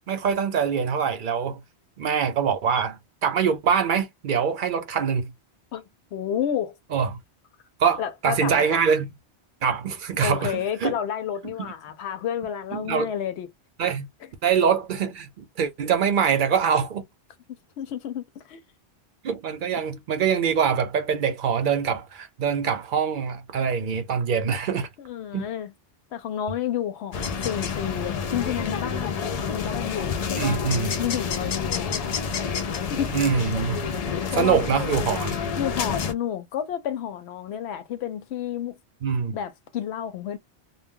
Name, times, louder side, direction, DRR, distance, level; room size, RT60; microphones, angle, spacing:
voice 1, 0.1-1.6 2.0-5.3 6.9-7.2 7.8-9.1 9.6-11.0 12.7-13.1 13.8-14.1 14.4-17.1 19.2-24.9 25.3-25.5 30.4-30.9 33.1-33.8 34.4-35.6 39.0-39.4, right 7 dB, 55° right, 0.7 m, -24 dB
voice 2, 6.1-6.7 8.0-8.9 10.2-13.5 17.8-18.6 25.0-25.7 26.1-30.7 31.0-32.1 32.7-33.2 34.3-34.7 35.6-38.7 39.3-40.4, left 9 dB, 80° left, 0.9 m, -30 dB
sound 1, 27.1-36.1, left 6 dB, 60° left, 0.4 m, -28 dB
2.2 x 2.0 x 3.5 m
omnidirectional pair, 1.1 m